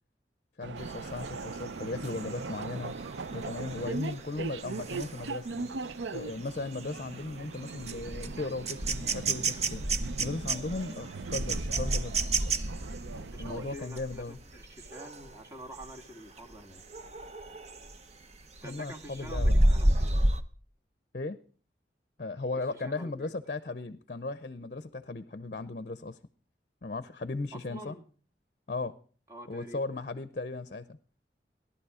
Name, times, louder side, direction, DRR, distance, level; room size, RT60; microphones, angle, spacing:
voice 1, 0.6-2.9 3.3-5.7 6.1-9.8 10.2-12.2 13.4-14.4 18.6-19.6 21.1-21.4 22.2-26.2 26.8-28.0 28.7-28.9 29.5-31.0, left 3 dB, 45° left, 0.7 m, -37 dB
sound 1, 0.6-13.8, right 4 dB, 90° right, 0.5 m, -40 dB
sound 2, 0.8-15.3 15.7-16.0 16.4-18.0 18.4-20.4, right 1 dB, 40° right, 0.8 m, -32 dB
voice 2, 13.1-16.8 18.6-20.3 22.5-23.3 27.5-28.0 29.3-29.8, equal, 15° right, 1.7 m, -47 dB
17.0 x 11.5 x 4.9 m
head